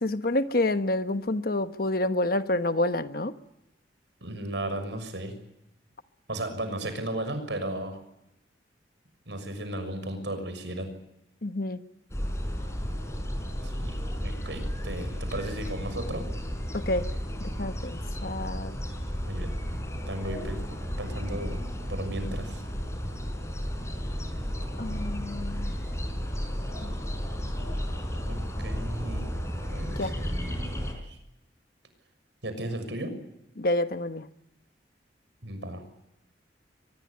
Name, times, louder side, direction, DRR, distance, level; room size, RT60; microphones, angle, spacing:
voice 1, 0.0-3.4 11.4-11.8 16.7-17.1 17.4-18.8 24.8-25.7 26.8-26.9 30.0-30.1 33.6-34.3, left 1 dB, 55° left, 10 dB, 1.3 m, -28 dB
voice 2, 4.2-5.3 6.3-8.0 9.2-10.9 13.6-16.3 19.2-19.5 20.1-20.6 21.0-21.6 21.9-22.6 28.3-29.3 29.7-31.2 32.4-33.1 35.4-35.8, right 1 dB, 85° right, 8 dB, 6.5 m, -35 dB
sound 1, 12.1-30.9, equal, 15° left, 5.1 m, -33 dB
24.0 x 21.0 x 9.9 m, 0.86 s
head